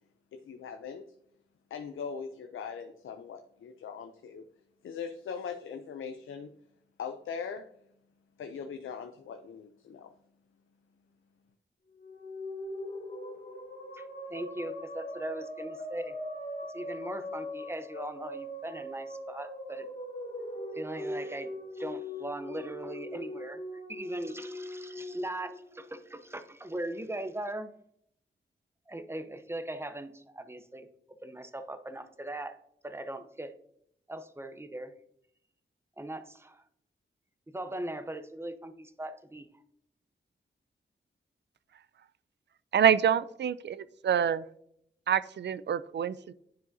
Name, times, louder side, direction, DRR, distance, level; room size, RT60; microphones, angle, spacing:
voice 1, 0.3-1.0 1.7-4.4 4.8-6.5 7.0-7.7 8.4-10.1, left 6 dB, 85° left, 7 dB, 0.5 m, -40 dB
sound 1, 11.9-26.4, left 1 dB, 45° left, 1.7 m, -41 dB
voice 2, 13.9-16.1 16.7-19.9 20.7-27.7 28.9-30.9 31.2-32.6 32.8-33.5 34.1-34.9 36.0-36.6 37.5-39.5, right 1 dB, 10° right, 10 dB, 0.7 m, -39 dB
voice 3, 42.7-44.4 45.1-46.3, right 8 dB, 60° right, 16 dB, 0.4 m, -26 dB
10.0 x 4.7 x 2.7 m, 0.71 s
cardioid pair, 55°, 20 cm